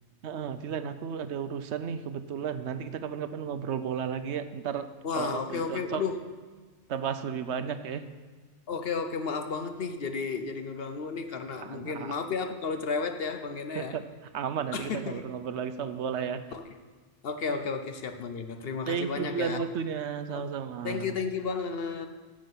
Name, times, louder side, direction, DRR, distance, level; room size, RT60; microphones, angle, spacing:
voice 1, 0.2-4.9 5.2-6.0 6.9-8.1 11.7-12.1 13.7-14.0 14.3-16.4 17.5-17.6 18.9-21.2, right 7 dB, 70° right, 10 dB, 0.9 m, -33 dB
voice 2, 5.0-6.2 8.7-14.0 14.7-15.2 16.5-16.7 17.2-19.6 20.3-20.5 20.8-22.1, left 5 dB, 60° left, 8 dB, 1.0 m, -33 dB
9.7 x 7.4 x 7.8 m, 1.4 s
omnidirectional pair, 1.2 m